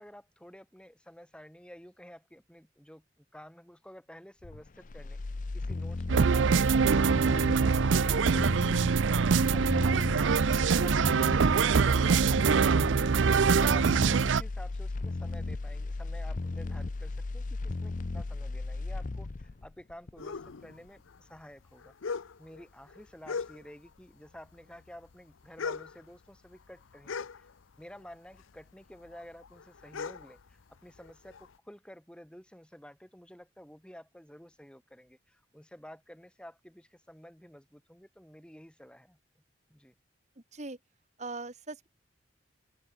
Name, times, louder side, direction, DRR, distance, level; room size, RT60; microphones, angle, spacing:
voice 1, 0.0-5.2 5.5-27.5 27.8-39.2 39.7-39.9, equal, 5° left, 2.6 m, -51 dB
sound 1, 4.4-20.5 20.9-21.0, left 2 dB, 40° left, 0.5 m, -35 dB
sound 2, 6.1-14.4, right 5 dB, 75° right, 0.5 m, -24 dB
sound 3, 20.2-24.0 24.3-28.0 28.3-31.5, left 5 dB, 90° left, 0.6 m, -40 dB
voice 2, 41.2-41.9, right 3 dB, 35° right, 1.3 m, -40 dB
open air
head